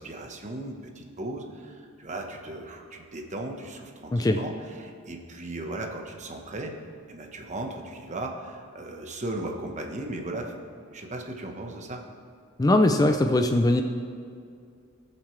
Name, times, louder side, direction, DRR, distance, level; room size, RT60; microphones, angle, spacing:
voice 1, 0.0-6.7 7.1-10.5 10.8-12.0, right 2 dB, 35° right, 2 dB, 1.2 m, -37 dB
voice 2, 12.6-13.8, left 1 dB, 15° left, 6 dB, 0.4 m, -20 dB
19.0 x 7.3 x 3.2 m, 2.4 s
head